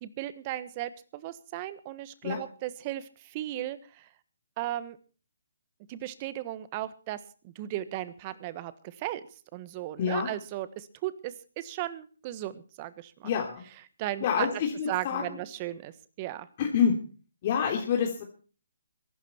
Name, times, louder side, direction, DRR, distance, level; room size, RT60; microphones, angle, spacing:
voice 1, 0.0-4.0 4.6-5.0 5.9-7.2 7.4-9.2 9.5-13.3 14.0-14.6 14.9-15.9 16.2-16.5, right 14 dB, 30° right, 15 dB, 1.3 m, -36 dB
voice 2, 10.0-10.3 13.2-13.6 14.2-15.2 16.6-16.9 17.4-18.2, left 7 dB, 40° left, 1 dB, 2.9 m, -27 dB
22.0 x 12.0 x 4.5 m, 0.39 s
figure-of-eight pair, 145°, 0 cm